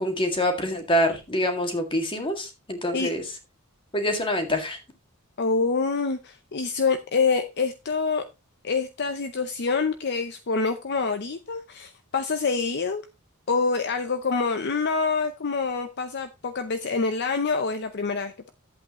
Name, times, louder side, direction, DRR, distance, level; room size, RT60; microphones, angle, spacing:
voice 1, 0.0-3.2 3.9-4.8, equal, 25° left, 2.0 m, -25 dB
voice 2, 5.4-8.2 8.6-13.0 13.5-18.5, left 4 dB, 50° left, 0.7 m, -26 dB
11.5 x 8.1 x 3.0 m
head